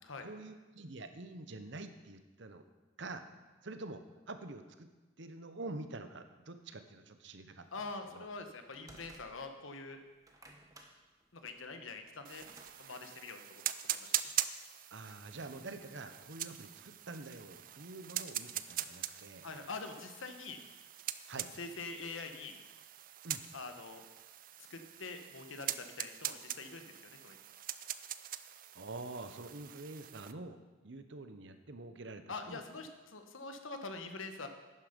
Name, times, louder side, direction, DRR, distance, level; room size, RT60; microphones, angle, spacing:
voice 1, 0.2-2.7 3.0-3.2 3.6-4.9 5.2-7.7 8.1-8.3 14.9-19.5 21.3-21.5 23.2-23.4 28.7-30.6 30.8-32.6, right 2 dB, 65° right, 9 dB, 0.9 m, -46 dB
voice 2, 7.7-10.0 11.3-12.4 12.8-14.3 19.4-20.6 21.3-22.6 23.5-24.0 24.7-27.4 32.3-34.5, left 3 dB, 80° left, 6 dB, 1.2 m, -45 dB
sound 1, 8.0-9.7 10.1-12.8, right 1 dB, 15° right, 1.0 m, -58 dB
sound 2, 12.2-30.3, right 12 dB, 45° right, 0.4 m, -42 dB
11.5 x 9.7 x 5.2 m, 1.2 s
head